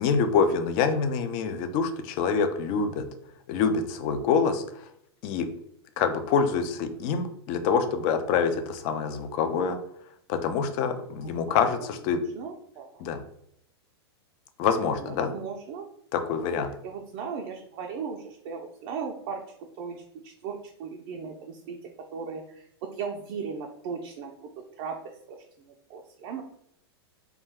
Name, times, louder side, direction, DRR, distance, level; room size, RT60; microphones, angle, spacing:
voice 1, 0.0-3.1 3.5-4.6 5.2-5.5 6.0-9.8 10.3-12.2 13.0-13.2 14.6-15.3 16.1-16.7, left 6 dB, 40° left, 8 dB, 0.4 m, -26 dB
voice 2, 11.1-11.7 12.3-13.0 14.8-15.8 16.2-16.5 16.8-19.4 19.8-21.8 22.1-22.7 22.9-24.3 24.8-25.4 25.9-26.4, right 6 dB, 45° right, 2 dB, 0.4 m, -37 dB
2.3 x 2.2 x 3.3 m, 0.72 s
hypercardioid pair, 125°, 14 cm